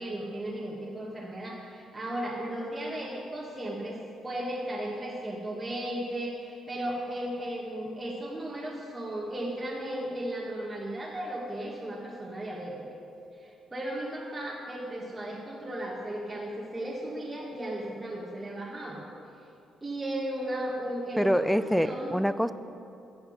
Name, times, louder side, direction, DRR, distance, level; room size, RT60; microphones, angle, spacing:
voice 1, 0.0-12.7 13.3-19.0 19.8-22.1, right 1 dB, 15° right, -5 dB, 1.7 m, -35 dB
voice 2, 21.2-22.5, equal, ahead, 14 dB, 0.4 m, -25 dB
16.0 x 5.8 x 5.4 m, 2.7 s
cardioid pair, 90°, 0 cm